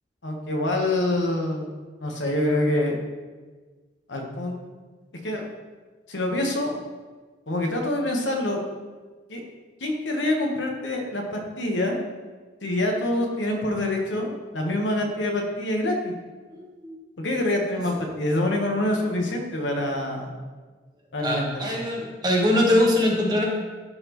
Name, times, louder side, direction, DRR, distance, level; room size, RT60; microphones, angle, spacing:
voice 1, 0.2-1.7 2.0-3.0 4.1-4.5 5.2-5.4 6.1-6.7 7.5-8.6 9.3-9.4 9.8-12.0 12.6-16.1 17.2-20.3 21.1-21.9, left 1 dB, 90° left, 1 dB, 1.1 m, -26 dB
voice 2, 16.6-16.9 21.2-23.4, left 1 dB, 25° right, -2 dB, 1.2 m, -22 dB
12.0 x 4.2 x 3.0 m, 1.4 s
head